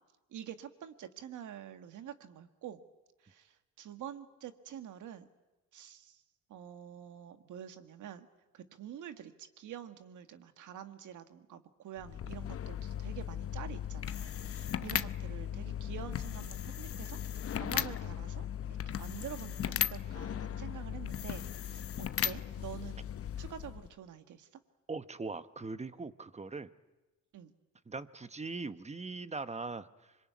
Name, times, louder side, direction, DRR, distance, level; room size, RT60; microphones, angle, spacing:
voice 1, 0.3-2.8 3.2-5.3 5.7-6.2 6.5-8.3 8.5-18.5 18.9-23.0 23.4-24.5 27.3-27.5, right 10 dB, 65° right, 8 dB, 1.9 m, -47 dB
sound 1, 12.0-23.9, left 9 dB, 45° left, 0.9 m, -37 dB
voice 2, 24.9-26.7 27.9-30.2, right 3 dB, 20° right, 12 dB, 1.1 m, -41 dB
25.5 x 22.5 x 9.5 m, 1.1 s
cardioid pair, 85°, 32 cm